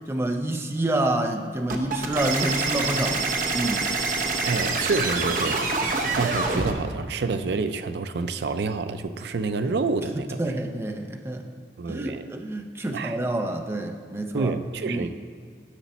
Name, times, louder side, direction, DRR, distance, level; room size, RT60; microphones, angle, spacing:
voice 1, 0.1-3.9 10.1-11.5 11.9-14.5 14.8-15.1, right 1 dB, 15° right, 4 dB, 0.4 m, -28 dB
sound 1, 1.7-6.7, right 3 dB, 50° right, 0.8 m, -26 dB
voice 2, 4.4-10.5 11.8-12.3 12.9-13.2 14.3-15.1, right 4 dB, 75° right, 10 dB, 0.4 m, -28 dB
10.0 x 7.0 x 4.1 m, 2.2 s
head